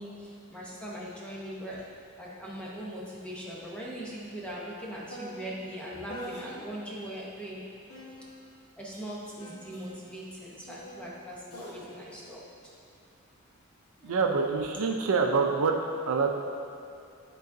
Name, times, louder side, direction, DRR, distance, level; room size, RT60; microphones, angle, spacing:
voice 1, 0.0-1.8 2.2-7.6 8.8-12.4 14.0-14.2, equal, 5° left, -5 dB, 0.9 m, -40 dB
sound 1, 1.7-1.9 2.2-7.0 7.9-13.4 14.3-14.7, equal, 85° left, 1.5 m, -47 dB
voice 2, 14.0-15.7 16.0-16.4, right 4 dB, 70° right, 2 dB, 0.5 m, -26 dB
10.5 x 3.9 x 2.7 m, 2.6 s
head